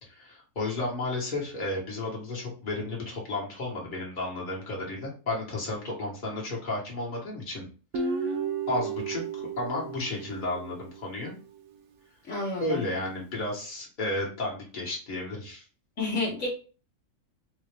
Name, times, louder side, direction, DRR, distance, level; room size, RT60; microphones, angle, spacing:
voice 1, 0.0-7.7 7.9-8.4 8.7-11.3 12.6-15.6, left 2 dB, 35° left, -4 dB, 1.4 m, -33 dB
Guitar, 7.9-11.2, right 5 dB, 75° right, 1.0 m, -33 dB
voice 2, 12.3-12.8 16.0-16.5, left 3 dB, 60° left, -3 dB, 1.3 m, -30 dB
4.0 x 2.6 x 3.2 m, 0.37 s
omnidirectional pair, 1.4 m